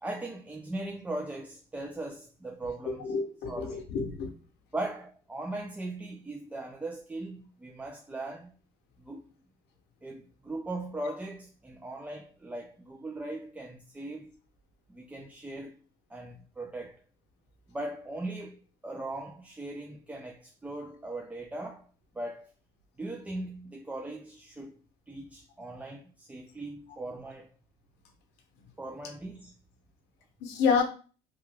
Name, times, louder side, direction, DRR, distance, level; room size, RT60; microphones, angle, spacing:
voice 1, 0.0-3.2 3.5-3.9 4.7-8.5 9.0-9.2 10.0-14.3 14.9-15.8 16.1-17.0 17.7-21.9 22.1-22.5 23.0-24.8 25.1-27.5 28.8-29.5, right 2 dB, 10° right, 0.3 m, -39 dB
voice 2, 3.0-4.3 30.4-30.8, left 5 dB, 85° left, 0.7 m, -28 dB
2.9 x 2.3 x 3.2 m
cardioid pair, 110°, 17 cm